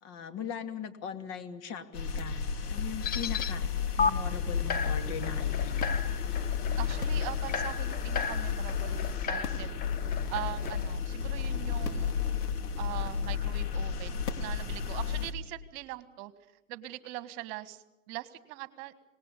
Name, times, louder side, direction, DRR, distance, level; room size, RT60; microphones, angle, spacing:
voice 1, 0.0-2.4 2.7-3.7 4.0-5.9, left 7 dB, 35° left, 7 dB, 2.7 m, -40 dB
sound 1, 1.9-15.3, left 6 dB, 70° left, 3.3 m, -32 dB
sound 2, 3.0-3.5 4.0-4.1 4.7-10.9, left 5 dB, 20° left, 1.0 m, -35 dB
voice 2, 6.8-9.8 10.3-12.1 12.8-16.3 16.7-19.0, right 17 dB, 40° right, 12 dB, 1.9 m, -41 dB
26.0 x 20.0 x 8.5 m, 0.93 s
hypercardioid pair, 120°, 47 cm